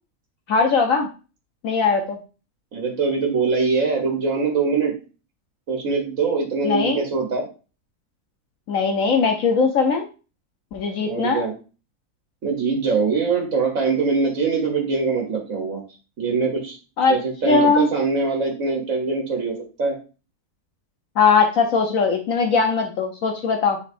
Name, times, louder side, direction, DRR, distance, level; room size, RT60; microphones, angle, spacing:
voice 1, 0.5-1.1 1.6-2.2 6.6-7.0 8.7-10.1 10.7-11.5 17.0-17.2 17.5-17.9 21.2-23.8, left 4 dB, 65° left, 4 dB, 1.1 m, -19 dB
voice 2, 2.7-4.9 5.7-7.5 11.0-11.5 12.4-15.8 16.2-16.8 17.1-20.0, right 4 dB, 55° right, 0 dB, 1.6 m, -23 dB
9.3 x 4.0 x 2.6 m, 0.34 s
omnidirectional pair, 1.6 m